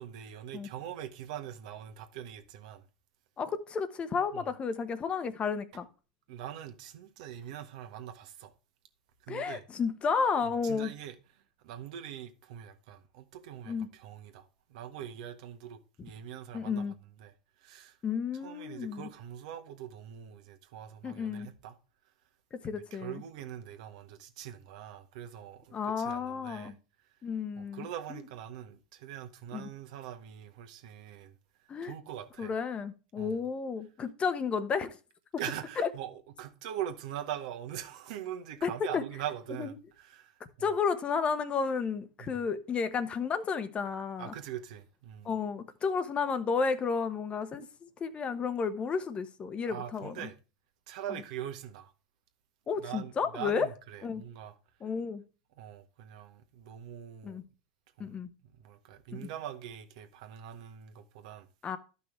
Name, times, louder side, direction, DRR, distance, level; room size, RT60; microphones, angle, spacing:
voice 1, 0.0-2.8 4.3-4.4 6.3-8.5 9.3-9.6 10.6-11.2 11.6-16.9 17.2-17.3 17.6-17.9 18.4-21.8 22.9-26.7 27.6-31.3 31.8-32.5 33.2-33.4 35.4-40.7 42.2-42.4 44.2-45.3 49.7-50.3 50.9-51.9 52.8-54.5 55.6-57.4 58.0-58.2 58.6-61.5, right 10 dB, 65° right, 1.4 m, -42 dB
voice 2, 3.4-5.9 9.3-10.9 13.6-13.9 16.5-16.9 18.0-19.1 21.0-21.5 22.5-23.2 25.7-26.7 27.2-28.2 29.5-29.7 31.7-31.9 32.4-35.0 35.8-35.9 38.6-39.0 39.6-39.7 40.6-44.3 45.2-50.3 52.7-53.7 54.0-54.2 54.8-55.2 57.2-57.4 58.0-58.3 59.1-59.3 61.6-61.8, left 5 dB, 30° left, 1.1 m, -32 dB
12.5 x 5.7 x 3.3 m
hypercardioid pair, 95°, 4 cm